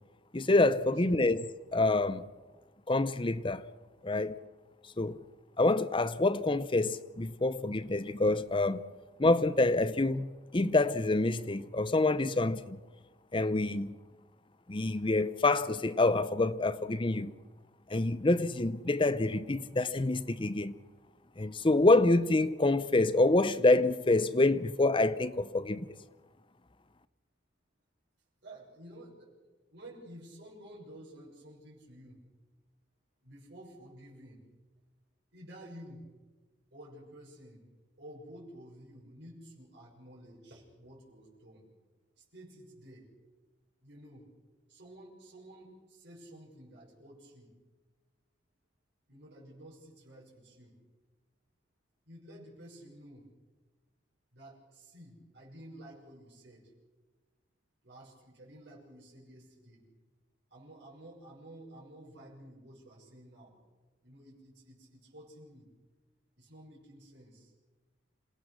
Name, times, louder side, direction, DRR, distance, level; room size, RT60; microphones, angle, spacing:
voice 1, 0.3-2.3 2.9-3.6 4.0-4.4 4.8-5.2 5.6-8.8 9.2-12.8 13.3-14.0 14.7-17.3 17.9-20.7 21.4-26.0, left 2 dB, 25° left, 0.7 m, -27 dB
voice 2, 28.4-29.3 29.7-32.2 33.2-34.4 35.3-36.0 36.7-37.6 38.0-41.6 42.2-43.1 43.8-44.3 44.7-47.5 49.1-50.8 52.0-53.3 54.3-56.6 57.8-59.8 60.5-63.6 64.0-65.7 66.4-67.5, right 1 dB, 60° right, 6.5 m, -52 dB
27.5 x 17.0 x 6.5 m
head